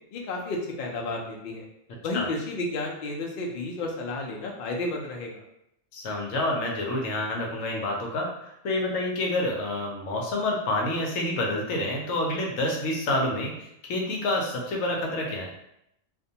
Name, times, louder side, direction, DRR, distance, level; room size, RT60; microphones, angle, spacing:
voice 1, 0.1-1.6 2.0-5.4, left 2 dB, 60° left, 0 dB, 0.6 m, -32 dB
voice 2, 5.9-8.3 8.6-15.5, left 1 dB, 85° left, -1 dB, 1.0 m, -28 dB
2.4 x 2.2 x 2.7 m, 0.78 s
omnidirectional pair, 1.3 m